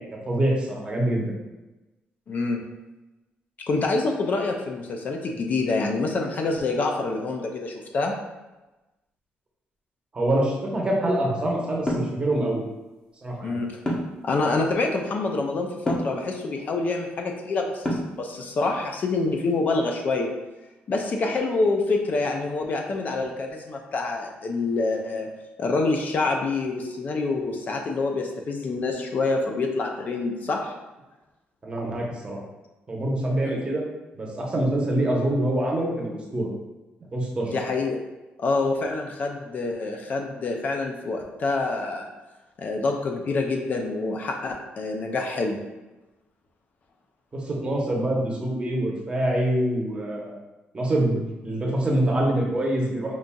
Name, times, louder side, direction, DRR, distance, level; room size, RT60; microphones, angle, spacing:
voice 1, 0.0-1.3 10.1-12.6 13.2-13.6 31.6-32.4 32.9-33.8 34.1-36.5 37.1-37.6 47.3-50.4 50.7-53.2, right 1 dB, 25° right, -2 dB, 0.8 m, -25 dB
voice 2, 2.3-2.6 3.7-8.1 13.4-13.8 14.2-20.3 20.9-25.3 25.6-30.7 37.4-38.0 38.4-42.1 42.6-45.6, left 3 dB, 45° left, 2 dB, 0.4 m, -26 dB
sound 1, 11.9-12.2 13.9-14.2 15.9-16.2 17.8-18.2, equal, 20° left, 0.8 m, -26 dB
5.3 x 2.5 x 2.2 m, 1.1 s
cardioid pair, 130°, 4 cm